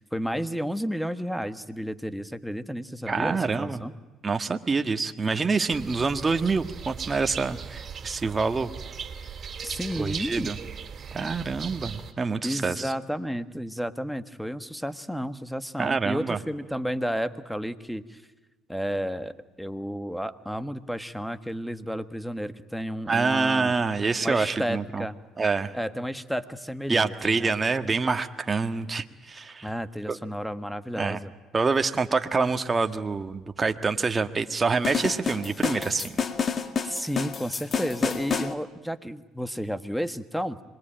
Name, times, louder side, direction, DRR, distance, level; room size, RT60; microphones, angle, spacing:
voice 1, 0.0-3.9 9.6-10.5 12.4-18.2 18.7-23.7 24.2-25.2 25.7-27.5 29.6-31.3 36.8-40.6, equal, ahead, 11 dB, 1.5 m, -32 dB
voice 2, 3.1-3.8 4.2-8.7 10.0-10.6 11.1-12.9 15.8-16.4 23.1-25.0 25.4-25.7 26.9-29.7 30.1-30.2 31.0-31.2 31.5-36.1, right 4 dB, 25° right, 7 dB, 1.5 m, -26 dB
sound 1, 5.7-12.1, right 6 dB, 40° right, 3.4 m, -38 dB
sound 2, 34.8-38.5, left 6 dB, 40° left, 2.0 m, -29 dB
26.0 x 22.0 x 9.0 m, 1.2 s
supercardioid pair, 80°, 0 cm